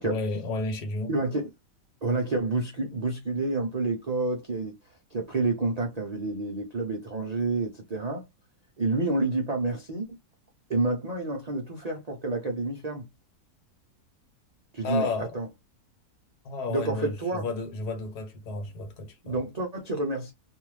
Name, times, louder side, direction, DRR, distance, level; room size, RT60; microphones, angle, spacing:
voice 1, 0.0-1.2 14.8-15.3 16.4-19.4, left 3 dB, 80° left, 1.4 m, -32 dB
voice 2, 1.1-1.5 2.0-4.7 5.1-8.2 8.8-10.2 10.7-13.1 14.7-15.1 15.3-15.5 16.7-17.4 19.2-20.3, right 2 dB, 65° right, 0.3 m, -29 dB
2.6 x 2.4 x 3.1 m
omnidirectional pair, 1.7 m